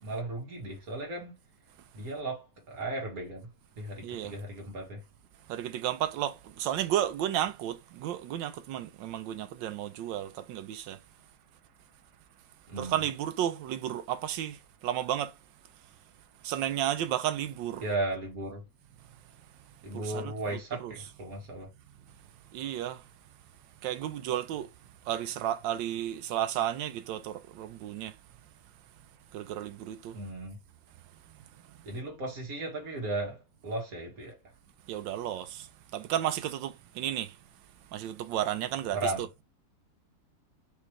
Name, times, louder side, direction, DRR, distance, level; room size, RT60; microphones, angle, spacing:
voice 1, 0.0-1.4 1.9-3.5 3.8-5.0 12.7-13.0 17.8-18.6 19.8-21.7 30.1-30.6 31.8-34.4 38.9-39.2, right 2 dB, 50° right, 2.1 m, -36 dB
voice 2, 4.0-4.3 5.5-11.0 12.8-15.3 16.4-17.8 19.9-20.3 20.8-20.9 22.5-23.0 23.8-24.7 25.1-28.2 29.3-30.2 34.9-37.4 37.9-39.0, right 11 dB, 85° right, 1.3 m, -33 dB
5.0 x 3.2 x 3.2 m
omnidirectional pair, 2.0 m